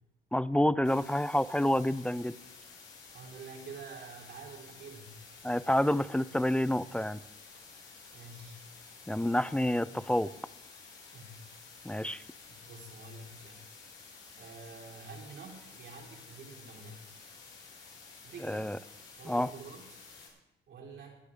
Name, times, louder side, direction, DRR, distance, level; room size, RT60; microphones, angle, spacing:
voice 1, 0.3-2.4 5.4-7.2 9.1-10.3 11.8-12.2 18.5-18.8 19.3-19.5, left 1 dB, 5° left, 17 dB, 0.4 m, -28 dB
sound 1, 0.8-20.3, left 4 dB, 75° left, 5.8 m, -52 dB
voice 2, 3.1-5.2 8.1-8.7 9.9-10.0 11.1-11.4 12.0-12.2 12.5-13.6 14.4-17.1 18.2-18.8 19.2-20.0 20.7-21.2, right 4 dB, 65° right, -1 dB, 3.8 m, -48 dB
22.0 x 10.0 x 3.6 m, 0.92 s
cardioid pair, 90°, 20 cm